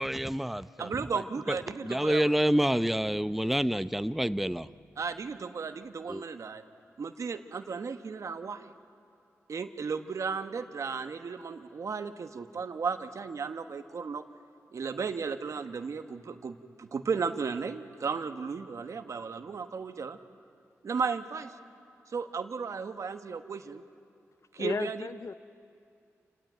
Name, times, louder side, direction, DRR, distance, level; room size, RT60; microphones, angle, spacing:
voice 1, 0.0-1.0 1.5-1.6 1.8-4.7 6.1-6.2, equal, 5° right, 0.6 m, -28 dB
voice 2, 0.8-2.3 5.0-6.6 7.0-8.7 9.5-14.2 14.7-20.2 20.8-21.6 22.1-23.8 24.5-25.0, right 5 dB, 65° right, 1.2 m, -35 dB
voice 3, 24.6-25.3, left 5 dB, 60° left, 0.6 m, -34 dB
29.0 x 17.0 x 9.1 m
supercardioid pair, 45°, 6 cm